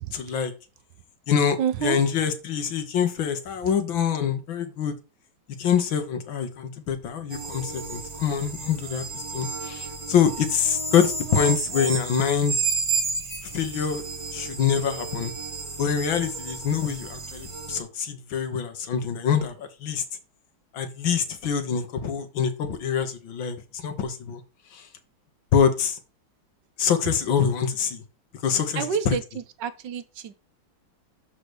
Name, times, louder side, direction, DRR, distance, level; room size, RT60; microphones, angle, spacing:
voice 1, 0.1-0.5 1.3-4.9 5.6-9.1 9.3-12.6 13.5-14.0 14.3-15.3 15.8-20.0 20.7-24.4 24.7-24.9 25.5-26.0 26.8-28.0 28.4-29.2, left 7 dB, 80° left, 1.9 m, -25 dB
voice 2, 1.6-2.0 28.7-29.2 29.6-30.3, right 7 dB, 70° right, 1.3 m, -27 dB
sound 1, 7.3-17.8, right 4 dB, 45° right, 0.4 m, -32 dB
6.6 x 4.9 x 6.1 m
omnidirectional pair, 2.1 m